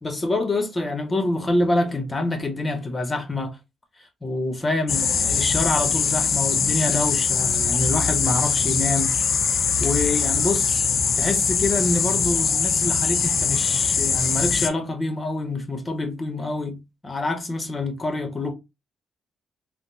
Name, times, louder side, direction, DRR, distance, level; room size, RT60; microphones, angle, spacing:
voice 1, 0.0-3.6 4.2-9.1 9.8-10.9 11.2-18.5, left 2 dB, 25° left, 1.2 m, -26 dB
sound 1, 4.9-14.7, left 6 dB, 60° left, 0.5 m, -22 dB
3.5 x 2.2 x 2.8 m
supercardioid pair, 60°, 0 cm